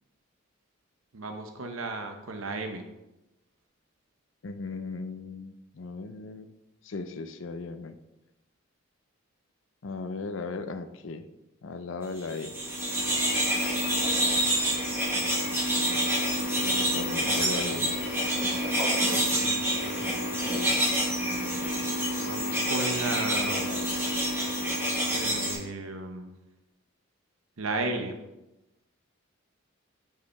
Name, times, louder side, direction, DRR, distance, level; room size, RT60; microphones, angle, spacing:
voice 1, 1.1-2.8 17.2-17.8 19.0-20.4 22.2-23.7 25.1-26.3 27.6-28.3, right 2 dB, 85° right, 5 dB, 0.8 m, -35 dB
voice 2, 4.4-6.5 6.8-7.9 9.8-11.3 11.6-12.6 16.6-17.9, left 3 dB, 70° left, 10 dB, 0.5 m, -37 dB
sound 1, 12.3-25.5, equal, 10° right, 1.4 m, -27 dB
8.3 x 4.9 x 3.4 m, 0.96 s
head